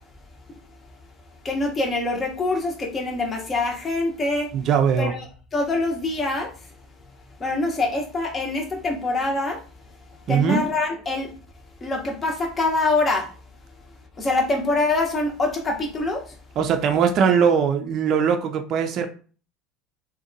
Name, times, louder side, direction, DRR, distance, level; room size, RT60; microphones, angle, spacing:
voice 1, 1.4-4.5 5.0-5.3 5.5-6.5 7.4-9.6 10.3-11.3 11.8-13.3 14.2-16.2, left 2 dB, 30° left, 0 dB, 0.7 m, -24 dB
voice 2, 4.5-5.1 10.3-10.6 16.6-19.1, right 7 dB, 50° right, 5 dB, 0.4 m, -20 dB
2.7 x 2.2 x 2.5 m, 0.38 s
hypercardioid pair, 90°, 0 cm